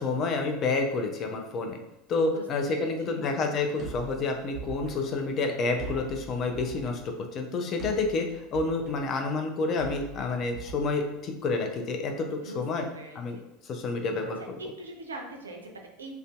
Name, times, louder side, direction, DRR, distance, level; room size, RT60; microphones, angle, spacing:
voice 1, 0.0-1.8 2.1-7.0 7.3-12.9 13.2-13.4 13.6-14.4, left 3 dB, 40° left, 3 dB, 0.4 m, -29 dB
voice 2, 2.3-3.2 12.4-13.4 14.2-16.2, right 2 dB, 80° right, 2 dB, 0.3 m, -43 dB
sound 1, 3.8-11.7, right 4 dB, 30° right, 0.7 m, -44 dB
2.5 x 2.2 x 2.3 m, 0.88 s
figure-of-eight pair, 75°, 0 cm